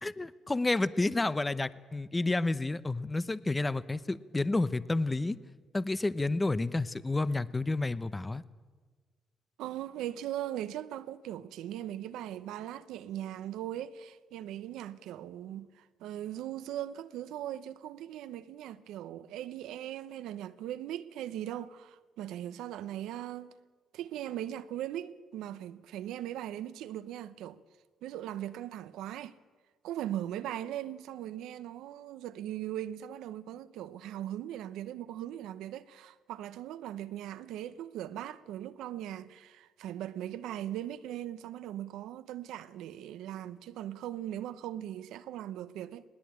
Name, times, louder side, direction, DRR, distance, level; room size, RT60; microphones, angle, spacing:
voice 1, 0.0-5.4 5.7-8.4, left 2 dB, 20° left, 0.8 m, -30 dB
voice 2, 9.6-23.5 23.9-27.6 28.0-29.3 29.8-46.0, right 12 dB, 90° right, 0.8 m, -39 dB
20.0 x 19.0 x 8.8 m
cardioid pair, 90°, 0 cm